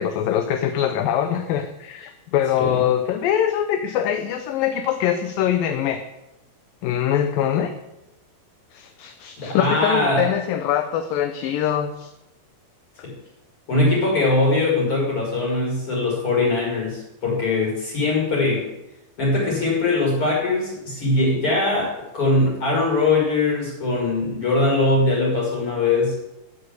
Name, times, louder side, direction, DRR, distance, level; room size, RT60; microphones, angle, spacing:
voice 1, 0.0-6.0 6.8-7.7 8.7-12.1, left 10 dB, 75° left, 7 dB, 2.4 m, -23 dB
voice 2, 9.4-10.3 13.0-13.1 13.7-18.7 19.2-26.2, left 2 dB, 35° left, -4 dB, 6.5 m, -21 dB
15.0 x 8.1 x 8.2 m, 0.90 s
omnidirectional pair, 4.5 m